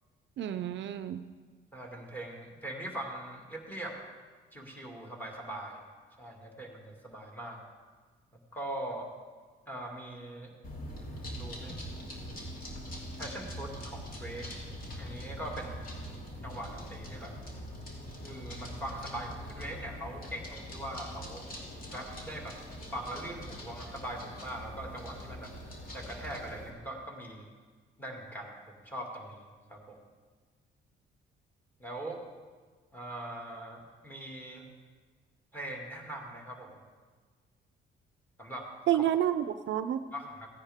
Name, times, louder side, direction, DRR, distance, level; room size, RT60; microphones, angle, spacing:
voice 1, 0.4-1.2 38.9-40.0, right 11 dB, 70° right, 11 dB, 0.5 m, -29 dB
voice 2, 1.7-4.0 4.5-5.8 6.2-7.6 8.5-9.1 9.7-10.5 11.1-11.8 13.2-14.5 15.0-15.8 16.4-17.3 18.2-21.5 21.9-22.6 22.9-25.5 25.9-27.5 28.0-30.0 31.8-32.2 32.9-34.7 35.5-36.8 38.4-38.7 38.9-39.0 40.1-40.5, right 1 dB, 10° left, 0 dB, 2.3 m, -41 dB
sound 1, 10.6-26.7, equal, 45° left, 2.4 m, -43 dB
15.5 x 9.8 x 3.6 m, 1.5 s
cardioid pair, 90°, 20 cm